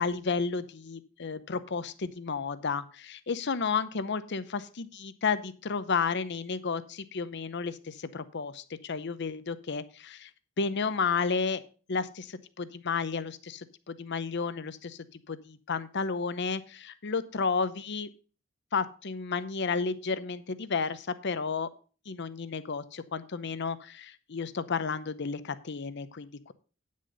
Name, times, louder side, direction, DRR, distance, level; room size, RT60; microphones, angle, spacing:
voice 1, 0.0-10.3 10.6-11.6 11.9-18.1 18.7-21.7 22.1-26.5, left 5 dB, 55° left, 14 dB, 0.7 m, -32 dB
9.6 x 6.4 x 5.3 m, 0.37 s
head